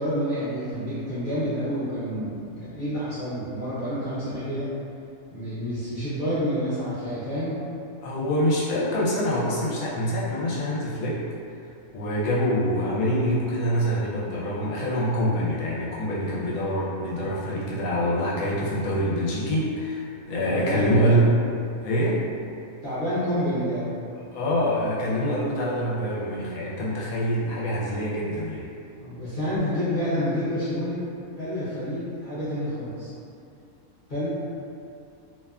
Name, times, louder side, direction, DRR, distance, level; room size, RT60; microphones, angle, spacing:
voice 1, 0.0-4.7 5.3-7.6 17.5-17.6 20.4-21.2 22.8-24.0 29.0-31.0 31.4-33.1 34.1-34.3, equal, 45° left, -14 dB, 0.8 m, -28 dB
voice 2, 8.0-11.2 11.9-21.3 21.8-22.2 24.3-28.7, equal, 80° left, -6 dB, 1.1 m, -25 dB
2.8 x 2.2 x 2.3 m, 2.6 s
omnidirectional pair, 1.5 m